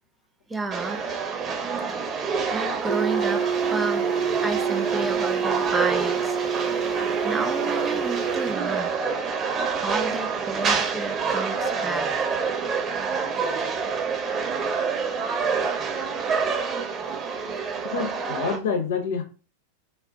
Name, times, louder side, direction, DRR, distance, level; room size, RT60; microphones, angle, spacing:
voice 1, 0.5-1.0 1.9-2.2 2.5-4.1 4.4-6.4 7.2-8.9 9.8-12.3 16.3-16.4, right 3 dB, 10° right, 0.3 m, -31 dB
sound 1, 0.7-18.6, right 5 dB, 25° right, 0.9 m, -27 dB
sound 2, 2.9-8.5, right 7 dB, 70° right, 0.6 m, -27 dB
voice 2, 17.8-19.2, left 5 dB, 55° left, 0.7 m, -27 dB
2.4 x 2.1 x 3.7 m
figure-of-eight pair, 90°, 0 cm